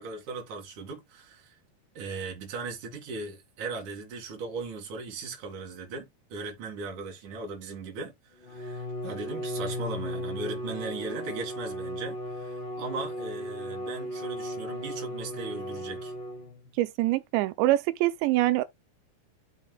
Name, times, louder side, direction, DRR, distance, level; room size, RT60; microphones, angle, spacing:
voice 1, 0.0-1.5 1.9-8.1 8.4-16.1, right 4 dB, 50° right, 3.3 m, -38 dB
Bowed string instrument, 8.4-16.7, equal, 65° left, 1.1 m, -36 dB
voice 2, 16.8-18.6, right 16 dB, 90° right, 3.0 m, -24 dB
13.0 x 5.8 x 2.3 m
omnidirectional pair, 5.0 m